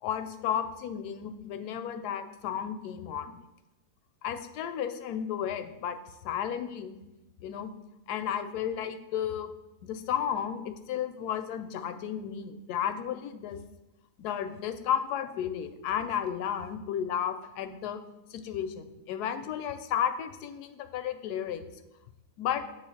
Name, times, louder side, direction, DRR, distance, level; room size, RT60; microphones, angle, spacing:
voice 1, 0.0-3.4 4.2-6.0 6.2-7.0 7.4-7.7 8.1-9.5 9.8-13.6 14.2-18.0 18.3-21.6 22.4-22.6, left 9 dB, 75° left, 8 dB, 1.1 m, -33 dB
7.8 x 3.2 x 6.1 m, 0.95 s
omnidirectional pair, 1.7 m